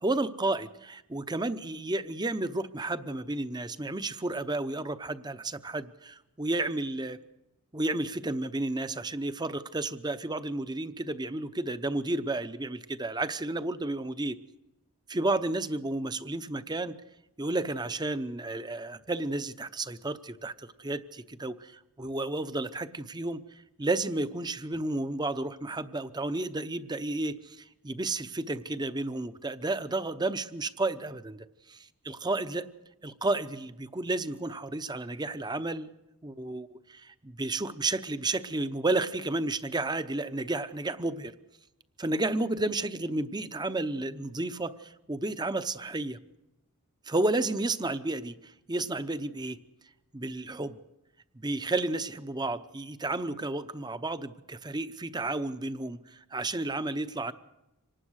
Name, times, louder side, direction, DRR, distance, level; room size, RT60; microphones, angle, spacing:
voice 1, 0.0-7.2 7.7-14.4 15.1-16.9 17.4-23.4 23.8-31.4 32.1-32.7 33.0-35.9 36.2-41.3 42.0-46.2 47.1-49.6 50.1-50.8 51.4-57.3, right 2 dB, 20° right, 12 dB, 0.8 m, -32 dB
25.5 x 19.0 x 6.4 m, 0.94 s
head